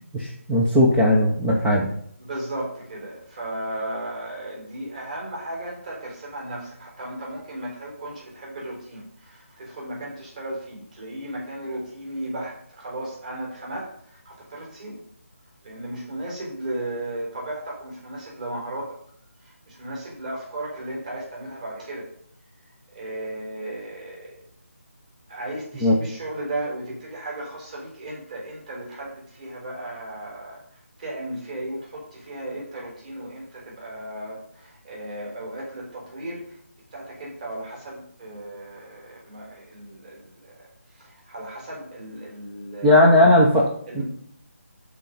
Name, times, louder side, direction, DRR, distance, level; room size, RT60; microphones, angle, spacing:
voice 1, 0.1-1.9 25.8-26.0 42.8-44.0, left 1 dB, 5° right, -5 dB, 0.5 m, -17 dB
voice 2, 2.2-15.0 15.6-19.0 19.4-22.1 22.9-24.5 25.3-36.6 36.9-43.0 43.9-44.0, right 1 dB, 35° right, -3 dB, 4.3 m, -35 dB
13.5 x 4.6 x 5.4 m, 0.63 s
figure-of-eight pair, 170°, 8 cm